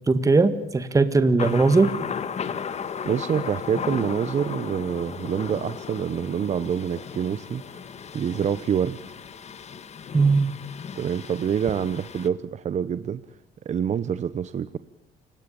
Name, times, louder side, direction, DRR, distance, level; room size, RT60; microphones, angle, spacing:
voice 1, 0.1-1.9 10.1-10.6, right 3 dB, 20° right, 11 dB, 1.9 m, -19 dB
Thunder, 1.4-12.3, left 7 dB, 40° left, 1.9 m, -35 dB
voice 2, 3.0-7.9 8.1-9.0 10.9-13.2 13.6-14.8, right 8 dB, 45° right, 14 dB, 1.0 m, -26 dB
29.5 x 18.0 x 8.9 m, 0.79 s
cardioid pair, 110°, 17 cm